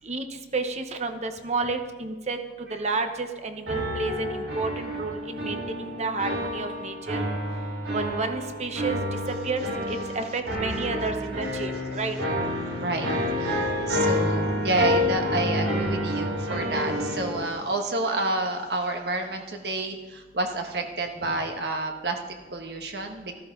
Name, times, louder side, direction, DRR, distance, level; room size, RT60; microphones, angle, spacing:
voice 1, 0.5-7.2 7.9-9.0 9.3-12.1 13.9-14.1 16.8-17.0, right 3 dB, 40° right, 7 dB, 0.9 m, -31 dB
sound 1, 3.7-17.4, left 1 dB, 85° right, 4.5 m, -29 dB
voice 2, 12.6-23.4, right 2 dB, 65° right, 4 dB, 1.4 m, -29 dB
14.0 x 13.5 x 3.8 m, 1.3 s
head